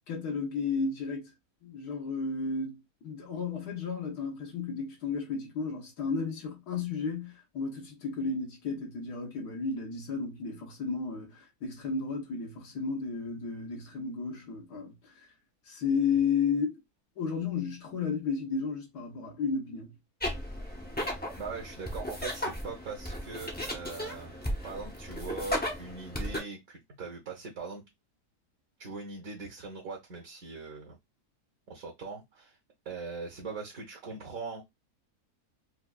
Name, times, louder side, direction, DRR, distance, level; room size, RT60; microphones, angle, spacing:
voice 1, 0.1-1.3 1.6-15.1 15.7-16.8 17.2-19.9, left 5 dB, 80° left, 1.6 m, -33 dB
sound 1, 20.2-26.4, left 1 dB, 15° left, 0.3 m, -35 dB
voice 2, 21.4-27.8 28.8-31.0 31.7-32.6 32.8-34.6, right 4 dB, 65° right, 1.3 m, -41 dB
4.6 x 2.3 x 2.3 m
omnidirectional pair, 1.7 m